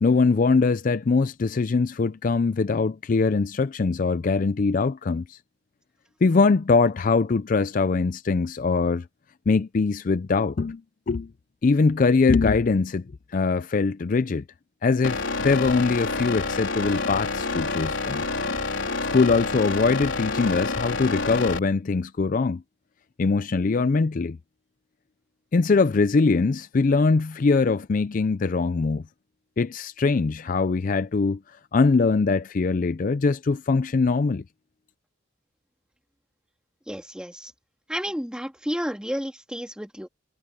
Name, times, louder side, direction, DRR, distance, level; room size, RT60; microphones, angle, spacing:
voice 1, 0.0-5.4 6.2-9.0 9.5-10.8 11.1-11.3 11.6-13.0 13.3-14.4 14.8-18.2 19.1-22.6 23.2-24.4 25.5-29.0 29.6-31.4 31.7-34.4, left 4 dB, 40° left, 0.4 m, -22 dB
sound 1, 15.0-21.6, left 3 dB, 70° left, 4.0 m, -28 dB
voice 2, 36.9-37.5 37.9-40.1, equal, 5° right, 2.5 m, -31 dB
head